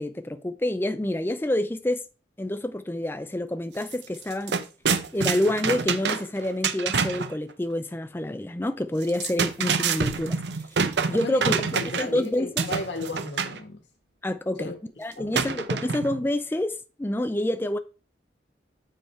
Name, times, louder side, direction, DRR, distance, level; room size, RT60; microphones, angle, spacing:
voice 1, 0.0-2.0 2.4-4.6 5.1-10.4 11.1-11.5 12.0-12.7 14.2-14.7 15.0-17.8, left 1 dB, 15° left, 0.4 m, -27 dB
sound 1, 3.8-3.9 4.2-7.3 9.0-12.2 12.6-13.6 15.3-16.2, right 5 dB, 75° right, 0.7 m, -26 dB
voice 2, 11.1-13.8 14.6-14.8 15.2-15.5, left 2 dB, 90° left, 1.9 m, -34 dB
7.7 x 4.9 x 4.4 m
head